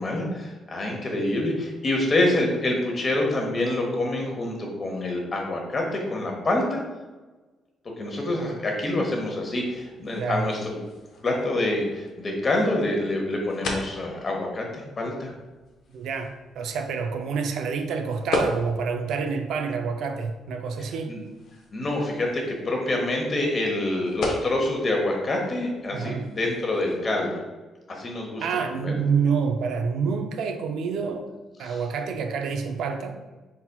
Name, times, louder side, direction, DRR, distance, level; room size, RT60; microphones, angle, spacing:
voice 1, 0.0-6.8 8.0-10.6 11.2-15.3 21.1-21.2 21.7-27.4 27.9-28.4 28.8-29.1 31.6-31.8, left 1 dB, 40° left, 0 dB, 1.0 m, -26 dB
sound 1, 9.4-27.1, left 2 dB, 75° left, 0.7 m, -38 dB
voice 2, 10.2-10.5 15.9-21.2 25.9-26.2 28.4-31.3 31.6-33.2, right 5 dB, 80° right, 6 dB, 0.4 m, -28 dB
4.0 x 4.0 x 2.3 m, 1.2 s
cardioid pair, 90°, 0 cm